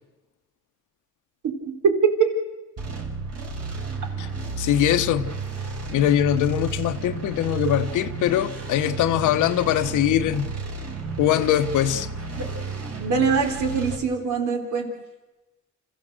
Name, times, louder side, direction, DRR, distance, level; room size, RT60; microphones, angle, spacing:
voice 1, 1.4-2.3 12.4-12.5 13.0-14.9, right 5 dB, 75° right, 3.8 m, -23 dB
sound 1, 2.8-14.0, right 3 dB, 55° right, 4.7 m, -32 dB
voice 2, 4.6-5.3 5.9-10.5 11.2-12.1, left 11 dB, 85° left, 1.0 m, -22 dB
27.5 x 14.5 x 7.8 m
cardioid pair, 90°, 30 cm